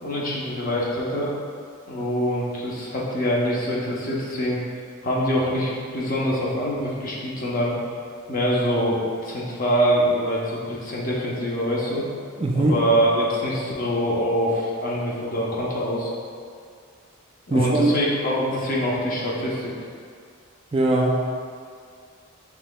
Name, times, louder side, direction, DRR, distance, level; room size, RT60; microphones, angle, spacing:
voice 1, 0.0-1.3 1.9-4.6 5.0-7.7 8.3-12.0 12.5-16.1 17.5-19.7, equal, 40° left, -5 dB, 0.8 m, -24 dB
voice 2, 12.4-12.8 17.5-17.9 20.7-21.2, right 2 dB, 25° right, -1 dB, 0.3 m, -20 dB
5.9 x 3.7 x 2.3 m, 2.2 s
head